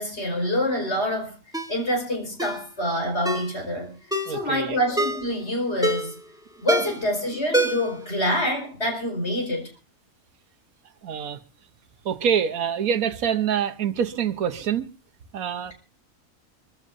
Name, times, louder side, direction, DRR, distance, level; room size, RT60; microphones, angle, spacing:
voice 1, 0.0-1.3 1.7-3.9 4.3-6.1 6.6-9.7, equal, 50° left, 5.0 m, -26 dB
Ringtone, 1.5-1.8 2.4-2.6 3.3-3.5 4.1-4.4 5.0-5.3 5.8-6.2 6.7-7.1 7.5-8.0 8.3-8.4, equal, 5° right, 1.8 m, -25 dB
voice 2, 4.3-4.8 6.8-6.9 11.0-11.4 12.0-14.9 15.3-15.7, right 8 dB, 90° right, 1.4 m, -26 dB
25.0 x 15.0 x 2.6 m
omnidirectional pair, 1.4 m